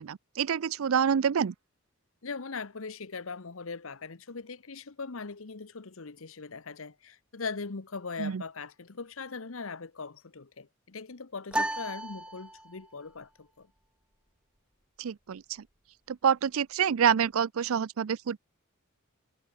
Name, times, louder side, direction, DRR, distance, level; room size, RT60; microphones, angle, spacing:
voice 1, 0.0-1.5 8.2-8.4 15.0-15.4 16.1-18.4, right 7 dB, 75° right, 0.4 m, -27 dB
voice 2, 2.2-13.7, left 4 dB, 70° left, 1.0 m, -40 dB
sound 1, 11.5-13.0, right 1 dB, 5° right, 0.7 m, -34 dB
head